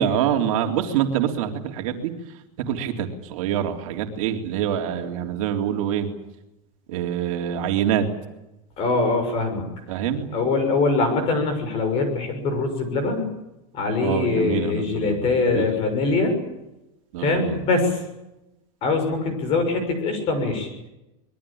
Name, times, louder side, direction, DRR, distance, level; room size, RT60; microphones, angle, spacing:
voice 1, 0.0-2.1 2.7-6.1 6.9-8.1 9.9-10.3 14.0-15.7 17.1-17.6, right 9 dB, 60° right, 4 dB, 3.6 m, -25 dB
voice 2, 8.8-9.6 10.3-13.2 13.7-16.4 17.2-18.0 18.8-20.7, left 3 dB, 30° left, 8 dB, 6.5 m, -23 dB
26.0 x 22.0 x 8.8 m, 0.94 s
supercardioid pair, 180°, 19 cm